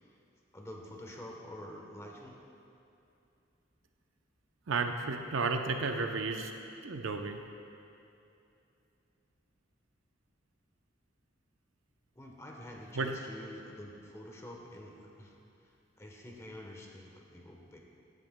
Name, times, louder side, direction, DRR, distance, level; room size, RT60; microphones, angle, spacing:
voice 1, 0.5-2.4 12.2-15.4 16.0-17.8, left 1 dB, 15° left, 0 dB, 1.0 m, -47 dB
voice 2, 4.7-6.5 6.8-7.4 12.9-13.2, right 4 dB, 85° right, 5 dB, 0.6 m, -32 dB
15.5 x 9.4 x 2.2 m, 2.7 s
head